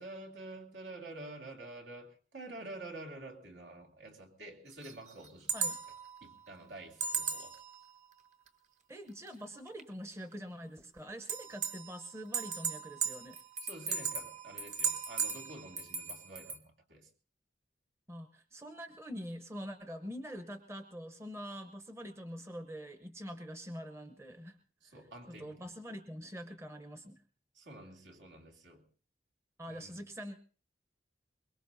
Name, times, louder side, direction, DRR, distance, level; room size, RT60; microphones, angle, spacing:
voice 1, 0.0-5.7 6.2-7.6 13.6-17.1 24.8-25.7 27.5-28.8 29.7-29.9, right 2 dB, 75° right, 2.9 m, -48 dB
sound 1, 4.8-6.2 7.0-7.8 8.5-8.6 9.3-9.4 9.8-9.9 11.3-12.1 12.3-16.6, right 6 dB, 40° right, 1.3 m, -37 dB
voice 2, 8.9-13.4 18.1-24.6 24.9-25.0 25.3-27.2 29.6-30.4, equal, 15° right, 0.8 m, -45 dB
23.5 x 21.5 x 2.7 m
head